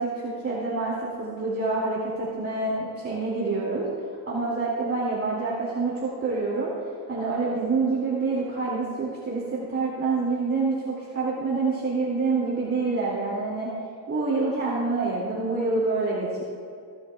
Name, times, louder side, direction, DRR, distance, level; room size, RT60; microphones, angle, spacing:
voice 1, 0.0-3.9 4.3-6.7 7.1-13.7 14.1-16.4, right 3 dB, 30° right, -6 dB, 2.3 m, -27 dB
16.5 x 12.0 x 2.3 m, 2.5 s
cardioid pair, 115°, 45 cm